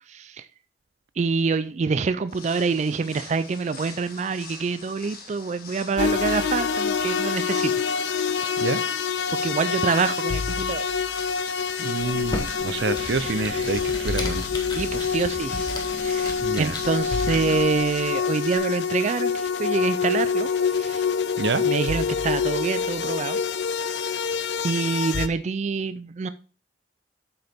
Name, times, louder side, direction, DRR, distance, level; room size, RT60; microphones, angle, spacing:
voice 1, 0.1-0.5 1.2-7.8 8.4-8.6 9.4-10.8 13.2-13.7 14.0-14.3 14.7-21.1 21.6-23.4 23.8-24.2 24.6-26.3, right 4 dB, 40° right, 0.4 m, -26 dB
sound 1, 2.2-18.6, left 4 dB, 55° left, 1.8 m, -45 dB
sound 2, 6.0-25.3, left 6 dB, 80° left, 0.6 m, -26 dB
voice 2, 11.8-14.5 16.4-16.8 21.4-21.6, right 4 dB, 80° right, 0.6 m, -27 dB
Computer keyboard, 12.0-17.8, left 1 dB, 25° left, 1.5 m, -35 dB
8.0 x 6.8 x 3.5 m
head